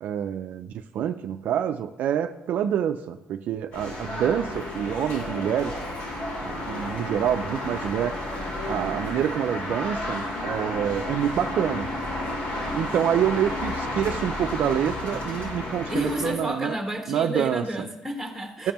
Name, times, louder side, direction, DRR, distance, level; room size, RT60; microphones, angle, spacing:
voice 1, 0.0-5.7 6.4-8.1 8.7-11.9 12.7-16.8 17.1-17.9 18.6-18.7, right 9 dB, 60° right, 8 dB, 0.3 m, -27 dB
sound 1, 3.7-16.3, left 1 dB, 60° left, 2.5 m, -32 dB
voice 2, 15.9-18.7, equal, 5° right, 2 dB, 1.3 m, -30 dB
13.5 x 5.3 x 2.9 m, 1.1 s
cardioid pair, 120°, 3 cm